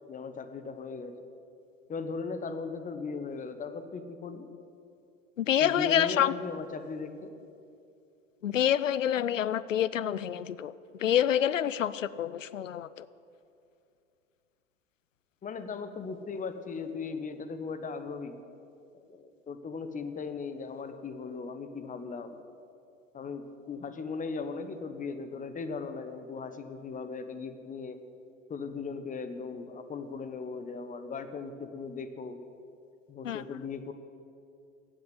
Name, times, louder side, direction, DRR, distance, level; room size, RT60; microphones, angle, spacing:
voice 1, 0.1-1.2 1.9-4.5 5.6-7.3 15.4-18.4 18.9-22.3 23.1-28.0 28.5-32.4 33.1-33.9, left 4 dB, 20° left, 10 dB, 1.0 m, -38 dB
voice 2, 5.4-6.3 8.4-10.7 11.0-13.1 33.2-33.4, left 10 dB, 80° left, 18 dB, 0.5 m, -27 dB
15.5 x 6.3 x 9.5 m, 2.5 s
figure-of-eight pair, 80°, 38 cm